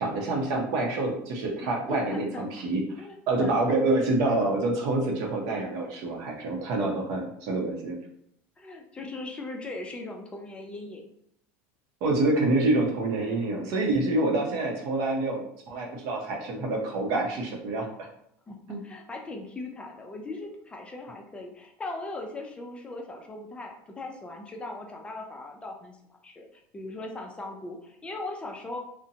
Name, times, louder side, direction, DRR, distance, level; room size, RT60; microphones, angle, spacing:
voice 1, 0.0-8.0 12.0-17.9 18.7-18.8, right 2 dB, 60° right, 1 dB, 0.7 m, -27 dB
voice 2, 1.6-2.4 3.0-3.2 3.4-3.8 8.6-11.1 18.5-18.6 18.8-26.0 26.2-28.8, left 2 dB, 15° left, 2 dB, 0.5 m, -39 dB
2.7 x 2.1 x 2.7 m, 0.71 s
supercardioid pair, 125°, 7 cm